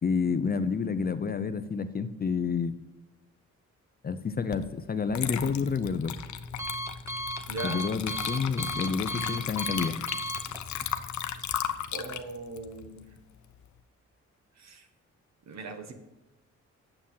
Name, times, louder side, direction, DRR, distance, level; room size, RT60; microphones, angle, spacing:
voice 1, 0.0-2.8 4.0-6.2 7.6-10.0, left 5 dB, 30° left, 12 dB, 0.6 m, -29 dB
Water / Liquid, 4.5-4.7 5.1-13.6, left 10 dB, 75° left, 0.7 m, -36 dB
Alarm, 5.4-11.6, equal, 10° right, 0.9 m, -38 dB
voice 2, 7.5-7.8 11.9-13.1 14.6-14.9 15.5-15.9, right 3 dB, 65° right, 6 dB, 1.5 m, -39 dB
9.0 x 7.3 x 5.6 m, 1.0 s
cardioid pair, 125°, 29 cm